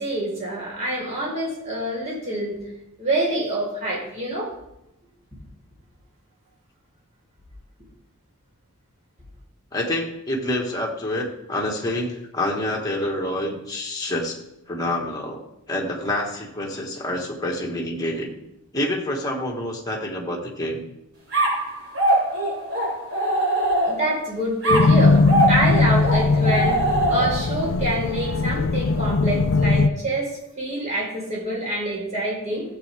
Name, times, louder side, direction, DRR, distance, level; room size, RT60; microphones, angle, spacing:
voice 1, 0.0-2.6 3.0-4.5 23.8-26.8 27.1-32.6, right 1 dB, 30° right, -5 dB, 4.4 m, -26 dB
voice 2, 9.7-14.4 14.7-15.4 15.7-18.3 18.7-20.8, left 1 dB, 15° left, 0 dB, 1.7 m, -27 dB
sound 1, 21.3-24.2 24.6-27.5, right 1 dB, 60° right, 4.3 m, -22 dB
sound 2, 24.7-29.9, left 3 dB, 65° left, 0.5 m, -20 dB
15.5 x 7.9 x 3.5 m, 0.83 s
head